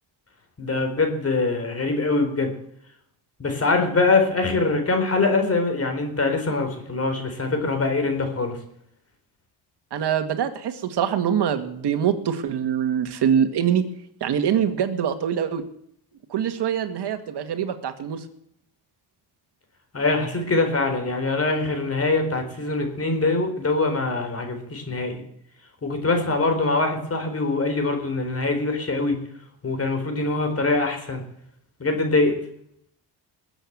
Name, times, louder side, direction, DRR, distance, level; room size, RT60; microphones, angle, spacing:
voice 1, 0.6-2.5 3.4-8.6 19.9-25.2 25.8-29.2 29.6-31.2 31.8-32.4, left 3 dB, 35° left, 5 dB, 4.2 m, -23 dB
voice 2, 9.9-13.8 14.2-15.6 16.3-18.2, right 8 dB, 70° right, 8 dB, 2.1 m, -24 dB
20.5 x 8.2 x 8.1 m, 0.70 s
cardioid pair, 105°, 41 cm